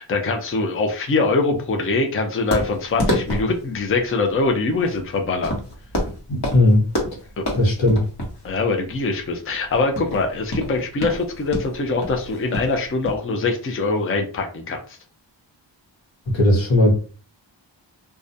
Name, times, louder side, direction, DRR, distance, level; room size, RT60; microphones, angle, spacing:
voice 1, 0.0-5.5 7.4-7.5 8.4-14.8, left 3 dB, 30° left, 3 dB, 0.5 m, -23 dB
sound 1, 2.5-13.1, equal, 60° left, 1.1 m, -29 dB
voice 2, 6.3-6.9 7.5-8.0 16.3-16.9, left 1 dB, 80° left, -1 dB, 1.0 m, -17 dB
2.3 x 2.1 x 2.6 m, 0.37 s
wide cardioid pair, 80°, 45 cm